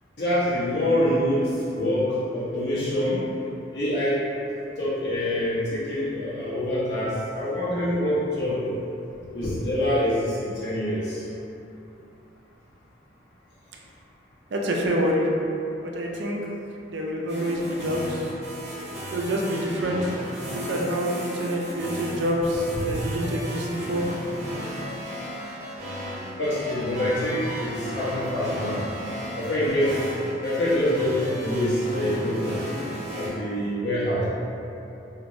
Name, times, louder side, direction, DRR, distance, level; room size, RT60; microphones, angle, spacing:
voice 1, 0.2-3.2 3.7-4.2 4.8-8.6 9.3-11.2 22.9-23.0 26.4-28.8 29.4-30.0 30.4-32.5 33.1-34.3, left 1 dB, 70° left, -10 dB, 1.0 m, -25 dB
voice 2, 14.5-15.3 15.8-16.4 16.9-18.2 19.1-20.1 20.7-24.1, equal, 75° right, -1 dB, 0.4 m, -26 dB
sound 1, 17.3-33.3, equal, 35° right, 1.0 m, -35 dB
3.0 x 2.5 x 2.6 m, 2.8 s
head